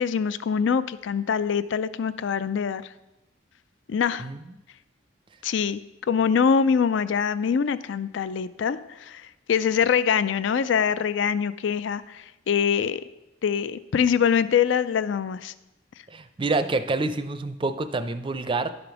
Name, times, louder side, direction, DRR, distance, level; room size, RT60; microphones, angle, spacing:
voice 1, 0.0-2.8 3.9-4.3 5.4-5.8 6.1-13.0 13.4-15.5, left 7 dB, 65° left, 15 dB, 0.4 m, -24 dB
voice 2, 16.1-18.7, right 3 dB, 25° right, 11 dB, 0.5 m, -27 dB
11.5 x 5.1 x 6.0 m, 0.96 s
head